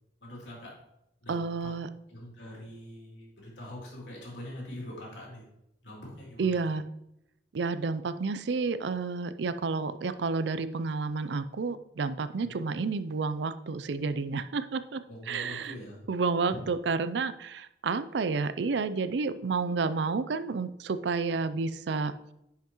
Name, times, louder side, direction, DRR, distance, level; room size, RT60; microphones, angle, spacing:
voice 1, 0.2-0.7 1.2-1.7 2.1-5.4 5.8-6.6 12.4-12.6 15.1-16.0 16.5-16.6, left 1 dB, 85° left, -3 dB, 3.1 m, -43 dB
voice 2, 1.3-1.9 6.4-6.8 7.5-15.0 15.3-15.8 16.1-22.1, right 4 dB, 75° right, 13 dB, 0.5 m, -30 dB
10.0 x 5.7 x 3.0 m, 0.83 s
head